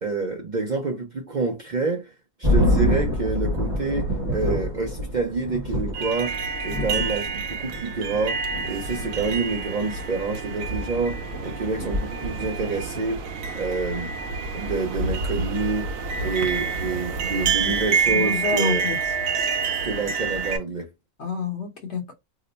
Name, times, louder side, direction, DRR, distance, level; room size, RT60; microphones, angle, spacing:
voice 1, 0.0-2.1 2.4-8.4 8.6-13.2 13.5-14.1 14.5-15.9 16.2-18.8 19.8-20.9, right 4 dB, 50° right, 0.5 m, -28 dB
sound 1, 2.4-18.1, left 1 dB, 20° right, 1.0 m, -29 dB
sound 2, 5.9-20.6, right 5 dB, 85° right, 1.1 m, -28 dB
voice 2, 18.1-19.0 21.2-22.1, left 4 dB, 60° left, 1.0 m, -28 dB
2.9 x 2.1 x 3.8 m
omnidirectional pair, 1.4 m